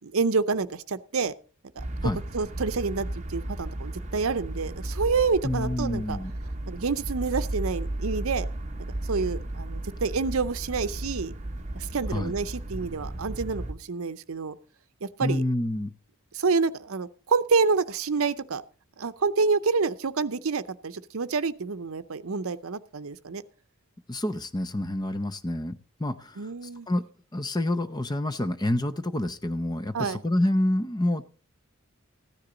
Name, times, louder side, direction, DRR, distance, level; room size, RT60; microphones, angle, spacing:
voice 1, 0.0-1.3 1.8-1.9 2.3-6.2 6.7-8.5 9.1-11.3 11.7-14.6 15.0-15.4 16.3-18.6 19.0-23.4 26.4-26.9 29.9-30.2, right 4 dB, 70° right, 13 dB, 0.6 m, -28 dB
sound 1, 1.8-13.7, right 1 dB, 30° right, 1.0 m, -34 dB
voice 2, 5.4-6.3 12.1-12.3 15.2-15.9 24.1-27.0 27.3-31.3, left 1 dB, 20° left, 11 dB, 0.6 m, -28 dB
14.5 x 9.9 x 3.9 m, 0.38 s
head